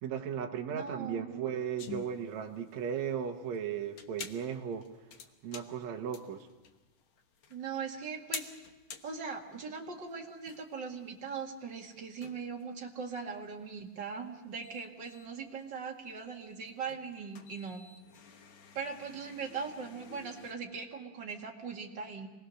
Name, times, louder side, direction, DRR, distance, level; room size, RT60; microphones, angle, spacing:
voice 1, 0.0-4.9 5.4-6.5, right 8 dB, 65° right, 3 dB, 2.3 m, -36 dB
voice 2, 0.7-1.4 7.5-8.5 9.0-17.8 18.7-22.3, right 5 dB, 35° right, 0 dB, 2.3 m, -40 dB
sound 1, 1.8-20.5, left 6 dB, 55° left, 1.6 m, -50 dB
26.0 x 20.5 x 6.4 m, 1.1 s
omnidirectional pair, 3.8 m